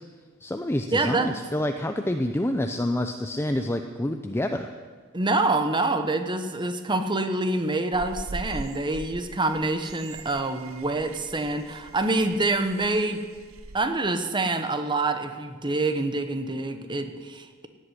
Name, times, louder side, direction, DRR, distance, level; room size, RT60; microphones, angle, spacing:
voice 1, 0.4-4.7, left 1 dB, 10° left, 6 dB, 0.6 m, -27 dB
voice 2, 0.9-1.3 5.1-13.2 13.7-17.7, right 2 dB, 25° right, 8 dB, 1.0 m, -26 dB
sound 1, 7.9-13.8, right 3 dB, 85° right, 1.0 m, -42 dB
16.5 x 8.0 x 9.9 m, 1.5 s
head